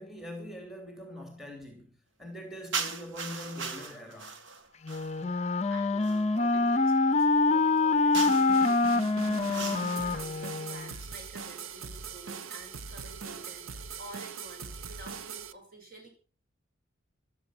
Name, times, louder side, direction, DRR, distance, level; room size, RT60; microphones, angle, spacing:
voice 1, 0.0-4.3, left 1 dB, ahead, 3.1 m, -43 dB
sound 1, 2.7-5.2 6.0-6.3 8.1-8.6 9.5-10.1, right 5 dB, 65° right, 1.8 m, -37 dB
Wind instrument woodwind instrument, 4.8-11.0, left 3 dB, 35° left, 0.6 m, -26 dB
voice 2, 5.2-9.1 9.4-16.1, right 1 dB, 45° right, 6.0 m, -49 dB
sound 2, 8.1-15.5, right 6 dB, 90° right, 0.9 m, -41 dB
15.0 x 12.5 x 5.9 m
head